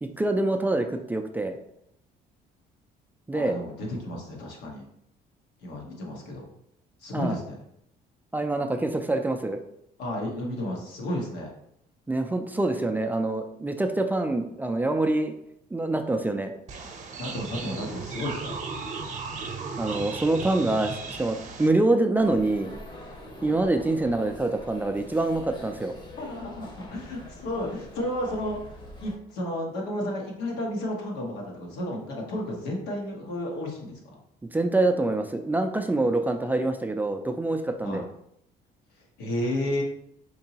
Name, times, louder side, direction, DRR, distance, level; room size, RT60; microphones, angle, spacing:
voice 1, 0.0-1.6 3.3-3.6 7.1-7.4 8.3-9.6 12.1-15.3 15.7-16.5 19.4-22.7 23.4-25.9 34.5-38.0, right 2 dB, 10° right, 5 dB, 0.3 m, -25 dB
voice 2, 3.3-4.8 5.6-6.5 7.0-7.6 10.0-11.5 17.2-18.6 23.4-23.6 26.2-28.6 29.0-34.2 36.1-36.3 37.8-38.0 39.2-39.8, left 1 dB, 90° left, -1 dB, 1.1 m, -32 dB
sound 1, 16.7-21.7, right 4 dB, 45° right, 0.7 m, -36 dB
sound 2, 22.2-29.2, left 1 dB, 25° left, 0.8 m, -44 dB
4.5 x 2.9 x 2.8 m, 0.76 s
cardioid pair, 110°, 17 cm